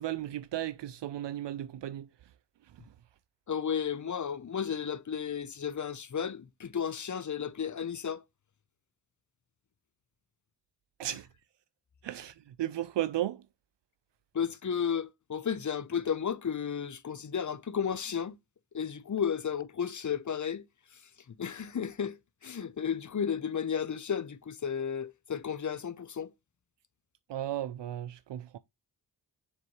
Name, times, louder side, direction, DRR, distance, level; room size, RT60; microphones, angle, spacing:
voice 1, 0.0-2.1 11.0-11.3 12.0-13.4 27.3-28.6, right 12 dB, 75° right, 0.5 m, -35 dB
voice 2, 3.5-8.2 14.3-18.4 18.7-20.6 20.9-21.0 21.3-26.3, left 7 dB, 45° left, 0.8 m, -33 dB
6.8 x 4.7 x 3.1 m
cardioid pair, 40°, 43 cm